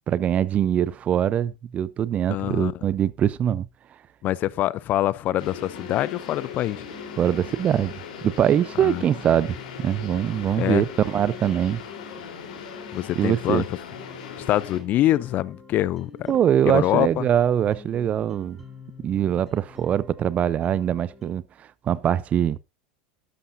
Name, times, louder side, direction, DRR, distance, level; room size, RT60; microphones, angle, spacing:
voice 1, 0.1-3.7 7.2-7.9 8.2-11.8 13.2-13.6 16.3-18.6 19.0-21.4 21.8-22.6, right 10 dB, 30° right, 0.6 m, -23 dB
voice 2, 2.3-2.7 4.2-6.8 8.8-9.0 10.6-10.8 12.9-13.6 14.4-16.3 16.6-17.3, left 14 dB, 40° left, 0.5 m, -24 dB
sound 1, 5.2-21.3, left 3 dB, ahead, 5.3 m, -47 dB
sound 2, 5.4-14.8, left 7 dB, 75° left, 3.6 m, -39 dB
13.0 x 11.5 x 2.6 m
supercardioid pair, 120°, 4 cm